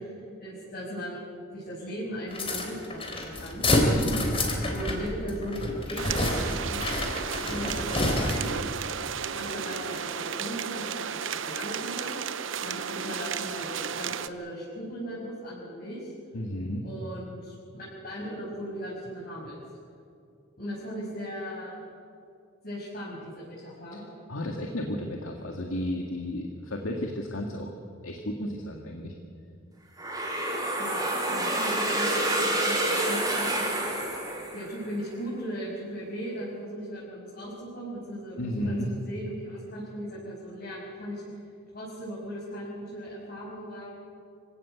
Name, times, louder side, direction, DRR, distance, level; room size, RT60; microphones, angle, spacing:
voice 1, 0.0-3.6 4.7-6.3 6.7-8.6 9.3-12.2 12.6-16.1 16.8-19.6 20.6-21.8 22.6-24.0 30.8-33.8 34.5-41.2 41.7-43.9, equal, 45° left, -8 dB, 6.6 m, -38 dB
sound 1, 2.3-8.7, left 1 dB, 25° left, 3.4 m, -28 dB
voice 2, 3.8-4.7 16.3-16.9 23.9-24.0 24.3-27.7 28.0-29.1 38.4-38.9, left 1 dB, 85° left, 2 dB, 2.0 m, -33 dB
sound 2, 6.0-14.3, right 7 dB, 65° right, 0.8 m, -33 dB
sound 3, 30.0-34.9, right 1 dB, 15° right, 4.5 m, -28 dB
26.0 x 17.0 x 8.2 m, 2.5 s
head